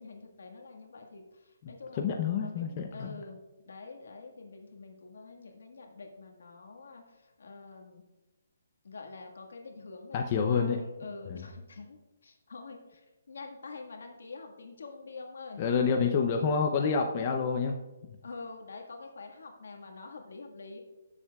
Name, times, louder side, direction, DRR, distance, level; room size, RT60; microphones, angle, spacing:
voice 1, 0.0-8.0 8.8-15.6 18.2-20.8, left 3 dB, 80° left, 2 dB, 1.6 m, -46 dB
voice 2, 2.0-3.2 10.1-10.8 11.3-11.4 15.6-17.8, left 6 dB, 30° left, 3 dB, 0.6 m, -28 dB
16.5 x 7.3 x 2.3 m, 1.1 s
hypercardioid pair, 165°, 0 cm